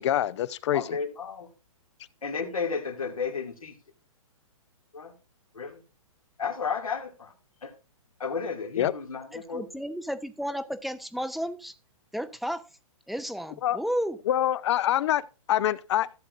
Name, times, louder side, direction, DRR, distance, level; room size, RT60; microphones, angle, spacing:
voice 1, 0.0-1.0 8.8-8.9 13.6-13.8 14.3-15.2 15.5-16.1, left 12 dB, 55° left, 0.7 m, -25 dB
voice 2, 0.7-1.5 2.2-3.7 4.9-5.1 5.5-5.8 6.4-7.3 7.6-7.7 8.2-9.7, left 5 dB, 90° left, 2.4 m, -33 dB
voice 3, 9.3-11.8 12.1-12.7 13.1-14.2, equal, ahead, 0.6 m, -32 dB
15.0 x 7.7 x 2.5 m
hypercardioid pair, 130°, 17 cm